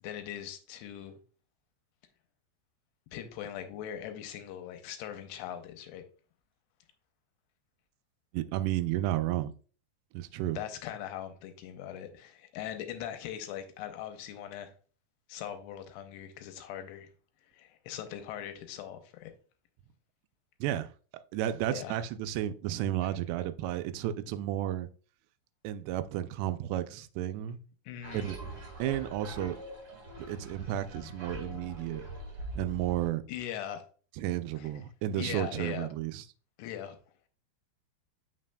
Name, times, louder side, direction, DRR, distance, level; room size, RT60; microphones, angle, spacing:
voice 1, 0.0-1.2 3.1-6.0 10.6-14.7 15.3-17.1 17.5-19.3 21.7-22.0 27.9-28.3 33.3-33.9 34.6-34.7 35.1-35.9 36.6-37.0, left 10 dB, 85° left, 2.9 m, -40 dB
voice 2, 8.3-9.5 10.1-10.6 20.6-20.9 21.3-24.9 25.6-27.6 28.1-28.4 28.8-29.6 30.3-32.0 32.6-33.2 34.2-36.2, right 12 dB, 90° right, 2.7 m, -32 dB
sound 1, 28.0-33.1, right 1 dB, 60° right, 1.2 m, -43 dB
7.4 x 5.7 x 2.2 m
omnidirectional pair, 4.7 m